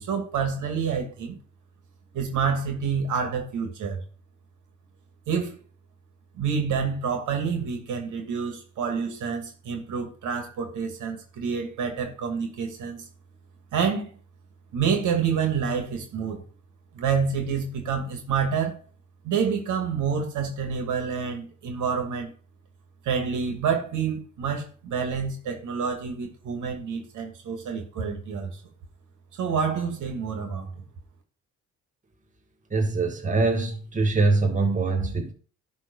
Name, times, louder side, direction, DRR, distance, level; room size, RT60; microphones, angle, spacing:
voice 1, 0.0-1.4 2.1-4.0 5.3-5.6 6.3-13.0 13.7-14.2 14.7-16.4 16.9-18.8 19.2-22.3 23.0-28.6 29.3-30.8, right 6 dB, 80° right, 2.5 m, -28 dB
voice 2, 32.7-35.3, right 3 dB, 25° right, 2.0 m, -23 dB
11.0 x 4.2 x 5.5 m
cardioid pair, 90°, 30 cm